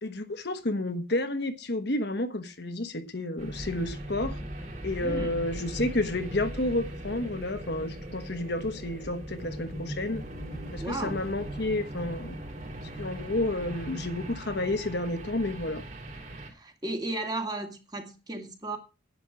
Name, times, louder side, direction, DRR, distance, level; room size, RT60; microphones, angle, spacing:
voice 1, 0.0-4.4 4.8-10.2 10.7-12.4 12.9-15.8, left 2 dB, 55° left, 1.3 m, -31 dB
sound 1, 3.4-16.5, right 1 dB, 35° right, 3.6 m, -39 dB
voice 2, 5.0-5.3 10.8-11.2 16.5-18.8, right 2 dB, 20° right, 2.2 m, -34 dB
10.5 x 9.0 x 6.2 m
head